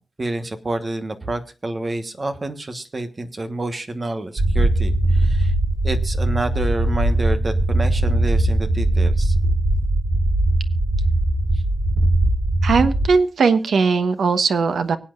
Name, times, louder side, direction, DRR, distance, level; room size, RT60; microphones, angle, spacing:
voice 1, 0.2-5.5 5.8-9.3, right 2 dB, 25° right, 9 dB, 1.2 m, -28 dB
sound 1, 4.4-13.1, right 1 dB, 45° right, 2.9 m, -19 dB
voice 2, 12.6-15.0, right 5 dB, 85° right, 10 dB, 1.1 m, -19 dB
24.5 x 8.6 x 2.5 m, 0.34 s
wide cardioid pair, 175°, 0 cm